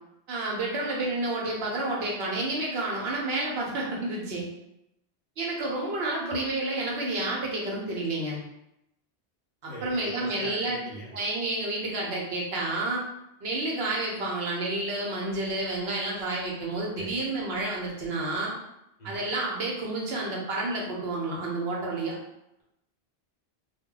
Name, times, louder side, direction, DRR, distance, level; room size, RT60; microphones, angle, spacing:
voice 1, 0.3-4.5 5.4-8.4 9.6-10.8 11.1-13.0 13.4-18.5 19.0-22.2, right 2 dB, 75° right, -3 dB, 0.9 m, -30 dB
voice 2, 9.7-11.2 17.0-17.2 19.0-19.3, equal, 45° left, -5 dB, 0.7 m, -42 dB
2.2 x 2.1 x 3.7 m, 0.84 s
omnidirectional pair, 1.1 m